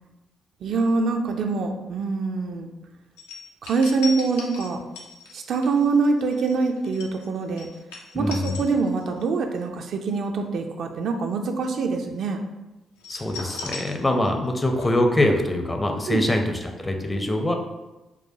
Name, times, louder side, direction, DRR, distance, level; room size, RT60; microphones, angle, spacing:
voice 1, 0.6-2.7 3.6-4.8 5.3-7.7 8.1-12.4 16.1-16.2, right 4 dB, 60° right, 4 dB, 0.3 m, -24 dB
sound 1, 3.2-9.3 9.6-9.8 13.0-14.5 14.8-14.9, left 4 dB, 80° left, 0.4 m, -38 dB
voice 2, 8.1-8.6 13.1-17.5, left 1 dB, 20° left, 3 dB, 0.5 m, -23 dB
4.6 x 2.1 x 2.6 m, 1.1 s
figure-of-eight pair, 40°, 0 cm